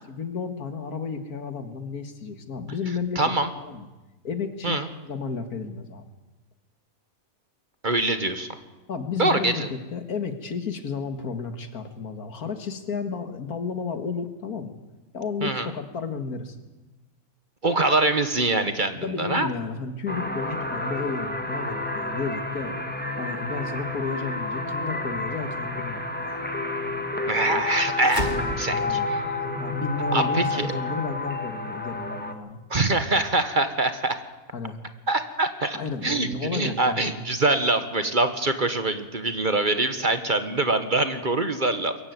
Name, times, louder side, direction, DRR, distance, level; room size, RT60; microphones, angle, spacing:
voice 1, 0.1-3.2 3.6-3.9 4.2-6.1 8.9-14.8 15.1-16.6 19.0-22.8 23.2-26.6 27.5-27.6 28.2-29.1 29.6-32.6 34.5-34.8 35.7-37.1, left 5 dB, 85° left, 8 dB, 2.2 m, -32 dB
voice 2, 3.1-3.5 4.6-4.9 7.8-8.5 9.2-9.7 15.4-15.7 17.6-19.5 27.3-29.2 30.1-30.7 32.7-34.1 35.1-35.8 36.0-42.0, right 2 dB, 35° right, 9 dB, 1.4 m, -24 dB
sound 1, 20.1-32.3, left 2 dB, 5° left, 1.5 m, -30 dB
sound 2, 28.0-32.7, left 1 dB, 45° left, 2.5 m, -35 dB
23.0 x 15.0 x 9.4 m, 1.1 s
omnidirectional pair, 1.5 m